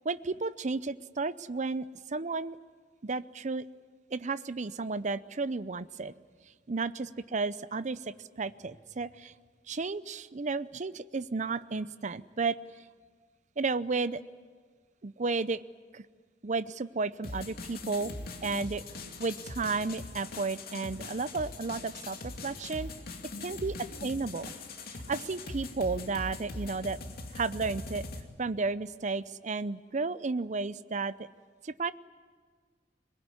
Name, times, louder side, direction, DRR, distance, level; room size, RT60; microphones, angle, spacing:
voice 1, 0.0-2.6 3.0-3.6 4.1-6.1 6.7-8.0 8.4-9.3 9.7-12.6 13.6-14.2 15.0-15.6 15.9-16.0 16.4-18.1 18.4-18.8 19.2-22.9 23.4-24.5 25.1-27.0 27.3-28.0 28.4-31.3 31.6-31.9, right 4 dB, 40° right, 15 dB, 0.6 m, -33 dB
sound 1, 17.2-28.2, left 2 dB, 55° left, 2.5 m, -41 dB
21.5 x 21.5 x 9.7 m, 1.5 s
head